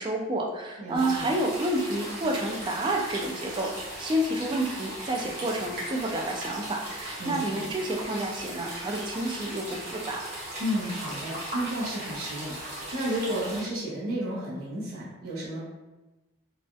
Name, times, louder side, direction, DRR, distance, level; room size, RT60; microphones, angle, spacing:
voice 1, 0.0-10.2, right 1 dB, 20° right, 1 dB, 0.3 m, -29 dB
voice 2, 0.8-1.3 7.2-7.6 10.6-15.6, equal, 85° right, -7 dB, 1.0 m, -32 dB
sound 1, 0.9-13.6, right 1 dB, 50° right, 1.0 m, -38 dB
3.3 x 2.3 x 2.6 m, 1.1 s
head